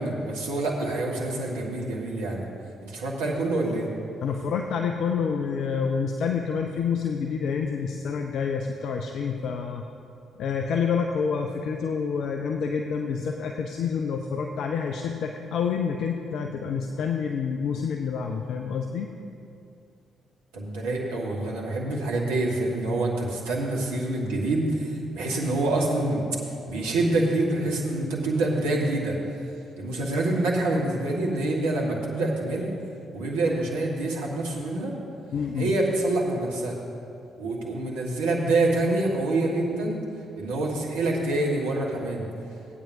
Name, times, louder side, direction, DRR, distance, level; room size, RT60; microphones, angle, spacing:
voice 1, 0.0-2.4 2.8-3.9 20.5-26.2 26.7-29.2 29.8-32.7 33.1-34.9 35.5-36.8 37.4-40.0 40.4-42.2, right 2 dB, 75° right, -2 dB, 1.6 m, -26 dB
voice 2, 4.2-9.8 10.4-19.1 35.3-35.7, left 6 dB, 60° left, 4 dB, 0.5 m, -28 dB
18.0 x 8.9 x 2.7 m, 2.6 s
figure-of-eight pair, 40°, 0 cm